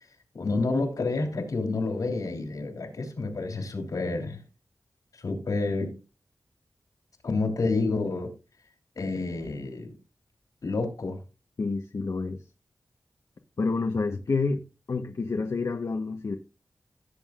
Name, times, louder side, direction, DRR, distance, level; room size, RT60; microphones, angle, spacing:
voice 1, 0.3-4.4 5.1-5.9 7.2-8.3 9.0-10.0 10.6-11.2, left 3 dB, 75° left, 3.2 m, -29 dB
voice 2, 11.6-12.4 13.6-14.6 14.9-16.4, left 4 dB, 60° left, 1.2 m, -28 dB
16.5 x 7.2 x 2.5 m
wide cardioid pair, 70°, 6 cm